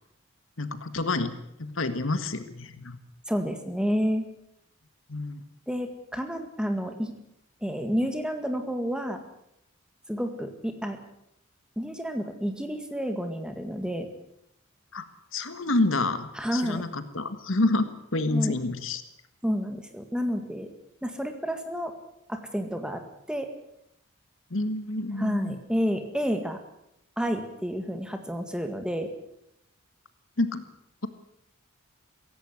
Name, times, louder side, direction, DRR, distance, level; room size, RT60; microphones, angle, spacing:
voice 1, 0.6-1.3 1.6-3.0 5.1-5.4 14.9-15.1 15.3-19.0 24.5-25.6 30.4-30.6, left 2 dB, 65° left, 11 dB, 1.6 m, -28 dB
voice 2, 3.3-4.3 5.7-7.1 7.6-9.2 10.1-11.0 11.8-14.1 16.4-16.8 18.3-18.5 19.4-20.7 21.0-21.9 22.3-23.0 23.3-23.5 25.2-26.6 27.2-29.1, equal, 5° right, 7 dB, 2.0 m, -30 dB
16.5 x 16.5 x 9.6 m, 0.78 s
head